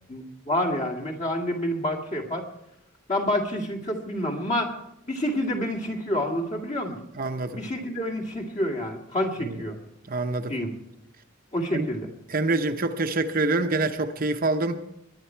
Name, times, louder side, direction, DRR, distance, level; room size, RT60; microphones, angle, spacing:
voice 1, 0.1-2.5 3.1-4.7 5.1-7.0 7.5-9.8 10.5-10.7 11.5-12.1, left 1 dB, 35° left, 2 dB, 2.2 m, -28 dB
voice 2, 7.2-7.6 9.4-9.6 10.1-10.5 11.7-11.9 12.3-14.8, right 2 dB, 40° right, 6 dB, 0.8 m, -26 dB
21.0 x 11.0 x 4.5 m, 0.80 s
head